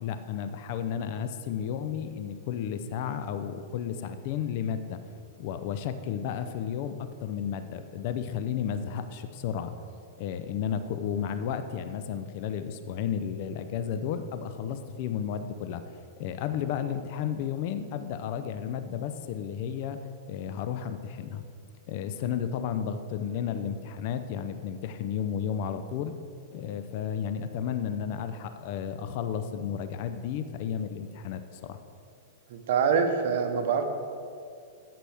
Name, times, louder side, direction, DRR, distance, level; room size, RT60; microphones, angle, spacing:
voice 1, 0.0-5.0 5.4-9.7 10.2-15.8 16.2-20.0 20.3-21.4 21.9-26.1 26.5-31.8, left 8 dB, 50° left, 10 dB, 0.6 m, -33 dB
voice 2, 32.5-33.8, right 6 dB, 65° right, 6 dB, 1.0 m, -25 dB
13.0 x 5.9 x 3.5 m, 2.3 s
hypercardioid pair, 135°, 0 cm